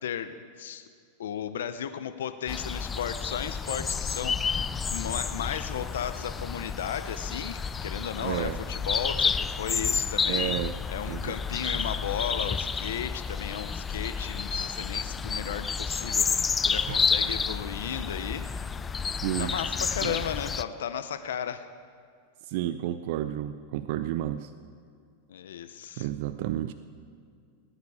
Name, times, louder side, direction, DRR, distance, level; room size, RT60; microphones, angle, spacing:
voice 1, 0.0-0.9 1.2-10.5 10.9-18.5 19.4-21.7 25.3-26.1, left 9 dB, 85° left, 10 dB, 0.7 m, -35 dB
sound 1, 2.5-20.6, left 5 dB, 15° left, 0.3 m, -30 dB
voice 2, 8.2-8.6 10.3-10.8 11.1-11.4 16.9-17.0 19.2-19.5 20.0-20.2 22.5-24.5 26.0-26.7, right 12 dB, 60° right, 11 dB, 0.5 m, -31 dB
18.5 x 9.7 x 4.8 m, 2.2 s
supercardioid pair, 130°, 0 cm